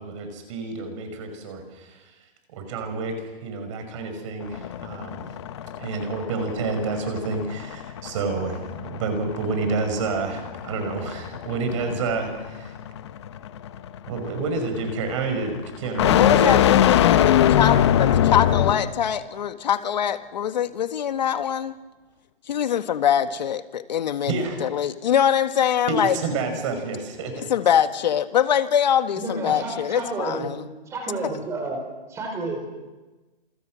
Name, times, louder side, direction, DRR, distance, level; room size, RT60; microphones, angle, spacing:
voice 1, 0.0-2.0 2.5-3.2 3.4-5.2 5.8-12.7 14.1-16.6 24.3-24.7 25.9-27.5, right 3 dB, 30° right, 6 dB, 5.7 m, -29 dB
sound 1, 4.4-19.0, left 10 dB, 30° left, 1.1 m, -23 dB
voice 2, 16.2-21.8 22.5-26.2 27.3-30.6, left 9 dB, 45° left, 9 dB, 1.7 m, -23 dB
voice 3, 29.2-30.5 30.9-31.8 32.1-32.6, right 2 dB, 10° right, 3 dB, 4.8 m, -30 dB
29.5 x 27.5 x 6.4 m, 1.2 s
hypercardioid pair, 165°, 30 cm